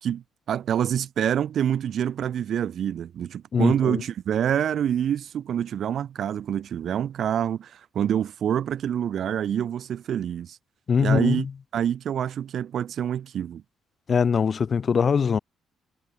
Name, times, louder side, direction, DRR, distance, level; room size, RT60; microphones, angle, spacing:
voice 1, 0.0-10.6 11.0-11.5 11.7-13.6, right 9 dB, 55° right, 1.6 m, -26 dB
voice 2, 3.5-4.0 10.9-11.5 14.1-15.4, left 6 dB, 35° left, 2.0 m, -22 dB
cardioid pair, 140°, 0 cm